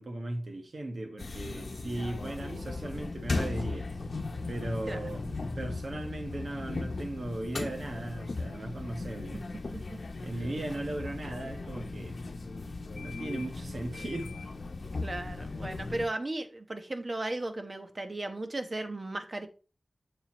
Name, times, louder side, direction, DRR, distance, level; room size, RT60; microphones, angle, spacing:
voice 1, 0.0-3.9 4.5-9.5 10.2-12.2 12.9-14.3, right 1 dB, 70° right, 1.4 m, -37 dB
sound 1, 1.2-16.1, left 3 dB, 65° left, 0.8 m, -37 dB
voice 2, 15.0-19.5, right 2 dB, 45° right, 1.0 m, -35 dB
7.1 x 6.9 x 3.1 m
wide cardioid pair, 55°, 0 cm